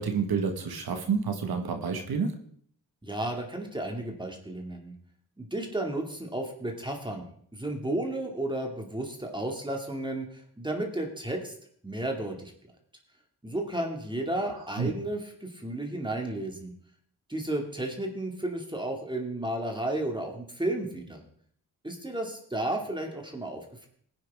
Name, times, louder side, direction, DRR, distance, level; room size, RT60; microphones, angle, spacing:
voice 1, 0.0-2.4 14.5-14.9, right 5 dB, 70° right, 5 dB, 1.7 m, -29 dB
voice 2, 3.0-4.9 5.4-10.3 10.6-11.5 11.8-12.5 13.4-16.7 17.3-21.2 21.8-23.9, right 1 dB, 10° right, 1 dB, 2.5 m, -33 dB
17.0 x 9.9 x 3.7 m, 0.62 s
cardioid pair, 65°, 38 cm